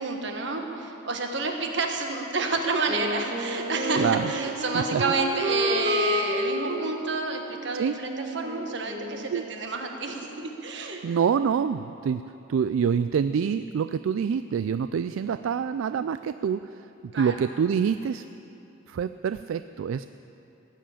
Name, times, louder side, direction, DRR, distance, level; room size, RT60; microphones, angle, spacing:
voice 1, 0.0-11.0 17.1-17.3, right 3 dB, 60° right, 3 dB, 1.5 m, -29 dB
Wind instrument woodwind instrument, 2.9-9.5, equal, 35° right, 1.1 m, -30 dB
voice 2, 4.0-4.3 4.7-5.0 7.8-8.0 9.3-9.4 11.0-16.8 17.2-18.2 18.9-20.1, right 7 dB, 75° right, 12 dB, 0.3 m, -26 dB
17.5 x 7.5 x 8.6 m, 2.9 s
head